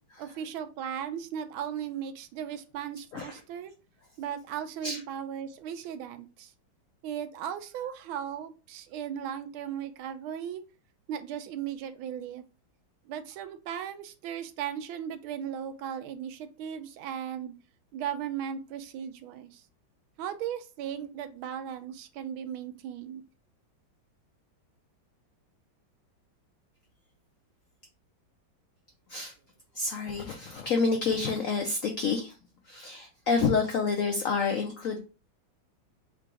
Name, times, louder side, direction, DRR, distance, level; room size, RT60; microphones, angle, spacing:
voice 1, 0.2-3.7 4.2-6.5 7.0-10.6 11.1-12.4 13.1-17.5 17.9-19.6 20.2-23.2, right 9 dB, 90° right, 8 dB, 1.4 m, -37 dB
voice 2, 29.7-32.4 32.6-35.0, left 4 dB, 85° left, 3 dB, 0.7 m, -28 dB
3.8 x 2.5 x 4.6 m, 0.33 s
omnidirectional pair, 2.2 m